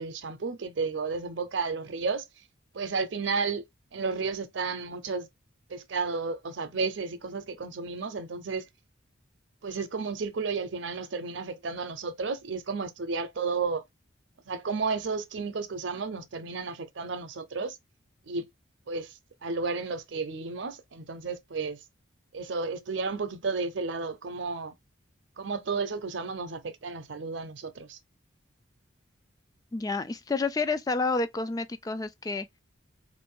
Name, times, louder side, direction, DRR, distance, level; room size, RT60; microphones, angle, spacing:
voice 1, 0.0-2.2 2.7-3.6 3.9-5.3 5.7-8.6 9.6-13.8 14.5-17.8 18.3-18.5 18.9-19.1 19.4-21.8 22.3-24.7 25.4-28.0, right 4 dB, 70° right, 0.6 m, -32 dB
voice 2, 29.7-32.5, left 3 dB, 20° left, 0.3 m, -29 dB
3.6 x 2.5 x 3.6 m
head